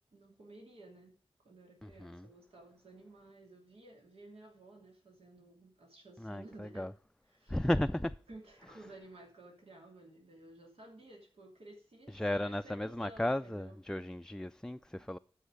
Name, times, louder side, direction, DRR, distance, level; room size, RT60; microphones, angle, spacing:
voice 1, 0.1-1.1 1.4-6.9 7.3-7.6 8.3-13.8, right 2 dB, 85° right, 2.9 m, -55 dB
voice 2, 1.8-2.3 6.2-6.9 7.5-8.2 12.1-15.2, left 1 dB, 5° left, 0.4 m, -35 dB
12.5 x 5.6 x 5.1 m
wide cardioid pair, 55°, 10 cm